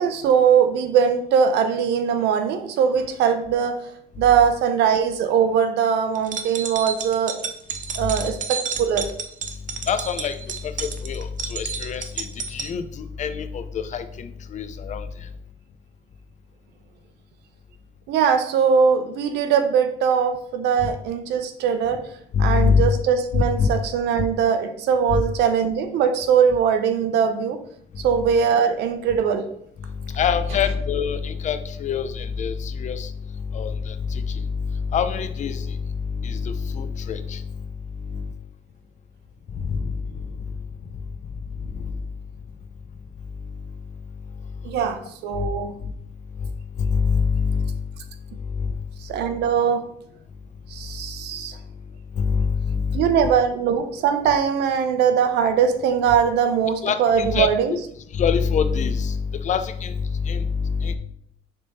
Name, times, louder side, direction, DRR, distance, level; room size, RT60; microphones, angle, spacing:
voice 1, 0.0-3.8 4.2-7.4 8.0-9.1 18.1-22.0 22.4-27.6 28.0-29.4 44.6-45.7 49.0-49.8 50.7-51.5 52.9-57.7, right 7 dB, 80° right, 8 dB, 0.8 m, -21 dB
sound 1, 6.2-12.7, right 6 dB, 50° right, 0.7 m, -31 dB
voice 2, 9.8-10.4 10.6-15.1 22.3-22.8 23.3-23.7 25.1-25.2 29.9-37.5 38.1-38.3 39.6-40.0 41.7-42.0 45.4-45.5 45.8-45.9 46.8-47.7 48.5-48.7 52.2-53.3 56.8-57.5 58.1-61.0, left 6 dB, 45° left, 10 dB, 0.6 m, -25 dB
6.7 x 3.6 x 4.2 m, 0.69 s
cardioid pair, 110°, 17 cm